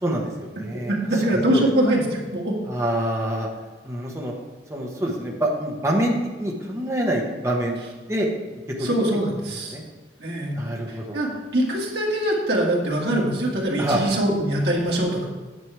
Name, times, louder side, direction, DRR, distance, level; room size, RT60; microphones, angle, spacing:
voice 1, 0.0-1.6 2.7-3.5 3.8-4.3 4.7-7.8 8.1-8.3 8.8-8.9 9.7-9.8 10.5-11.2 13.8-14.2, right 1 dB, 15° right, -1 dB, 1.2 m, -26 dB
voice 2, 0.9-2.5 8.8-9.8 10.2-10.6 10.9-15.3, right 1 dB, 70° right, -2 dB, 2.2 m, -23 dB
9.3 x 7.4 x 4.8 m, 1.4 s
head